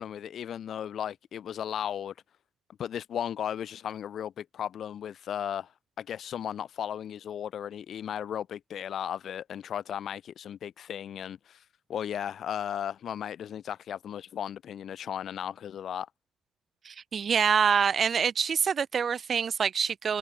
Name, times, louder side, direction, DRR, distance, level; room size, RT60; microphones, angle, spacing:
voice 1, 0.0-2.1 2.8-5.7 6.0-11.6 11.9-16.1, left 9 dB, 65° left, 0.9 m, -35 dB
voice 2, 16.8-20.2, right 6 dB, 50° right, 1.2 m, -26 dB
cardioid pair, 90°, 0 cm